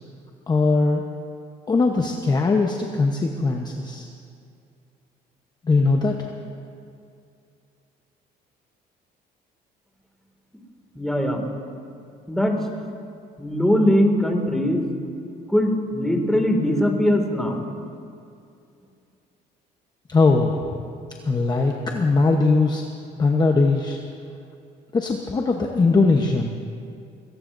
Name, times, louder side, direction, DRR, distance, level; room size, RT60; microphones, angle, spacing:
voice 1, 0.5-1.0 1.7-4.1 5.6-6.3 20.1-20.5 21.2-22.8 23.2-24.0 24.9-26.5, left 3 dB, 25° left, 1 dB, 1.0 m, -20 dB
voice 2, 11.0-11.4 12.3-12.6 13.4-14.8 15.5-17.6, equal, 5° left, 2 dB, 2.3 m, -21 dB
24.0 x 17.5 x 2.7 m, 2.4 s
cardioid pair, 110°, 17 cm